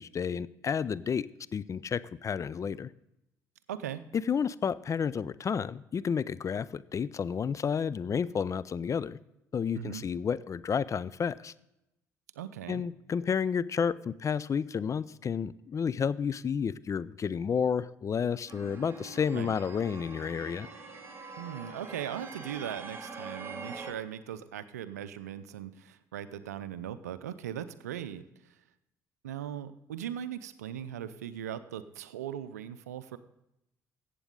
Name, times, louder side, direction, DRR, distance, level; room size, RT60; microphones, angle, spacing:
voice 1, 0.0-2.9 4.3-9.2 9.5-11.5 12.7-20.7, left 6 dB, 40° left, 18 dB, 0.4 m, -31 dB
voice 2, 3.7-4.0 9.7-10.0 12.4-12.8 19.3-19.5 21.4-28.6 29.2-33.2, right 10 dB, 90° right, 14 dB, 0.5 m, -39 dB
sound 1, 18.5-23.9, right 3 dB, 30° right, 2.5 m, -44 dB
15.0 x 8.3 x 3.8 m, 0.86 s
hypercardioid pair, 50°, 8 cm